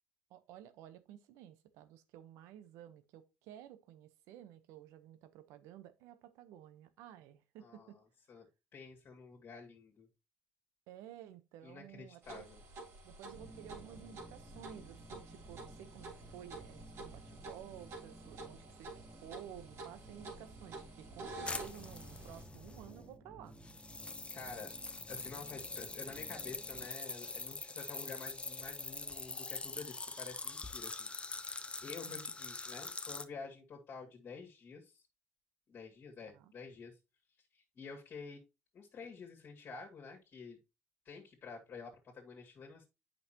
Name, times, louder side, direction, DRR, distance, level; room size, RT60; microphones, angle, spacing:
voice 1, 0.3-8.0 10.9-12.4 13.0-23.6 32.0-32.3 36.3-36.5, right 11 dB, 80° right, 0.9 m, -53 dB
voice 2, 7.6-10.1 11.6-12.6 24.3-24.7 25.1-35.1 35.7-37.0 37.5-38.4 38.7-40.6 41.0-42.9, left 4 dB, 50° left, 2.3 m, -50 dB
sound 1, 12.2-22.4, right 2 dB, 65° right, 3.2 m, -50 dB
sound 2, 13.3-26.9, right 2 dB, 5° right, 1.3 m, -56 dB
sound 3, 21.4-23.1 23.6-33.2, left 3 dB, 25° left, 0.9 m, -44 dB
8.2 x 5.7 x 2.9 m
supercardioid pair, 70°, 5 cm